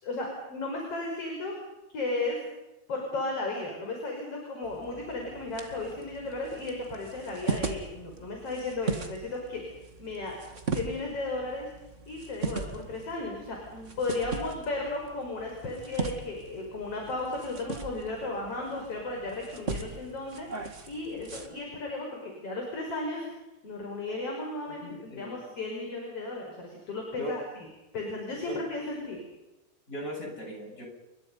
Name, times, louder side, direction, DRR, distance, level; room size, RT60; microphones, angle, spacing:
voice 1, 0.0-1.5 1.9-2.4 2.9-9.6 10.0-10.4 10.7-11.7 12.1-23.3 23.6-27.7 27.9-29.2, left 2 dB, 50° left, 0 dB, 6.5 m, -35 dB
sound 1, 4.6-21.5, right 4 dB, 25° right, 2.1 m, -39 dB
voice 2, 24.8-25.3 27.2-27.3 28.5-28.6 29.9-30.9, equal, 25° left, 1 dB, 8.5 m, -38 dB
30.0 x 24.5 x 5.5 m, 1.0 s
omnidirectional pair, 3.4 m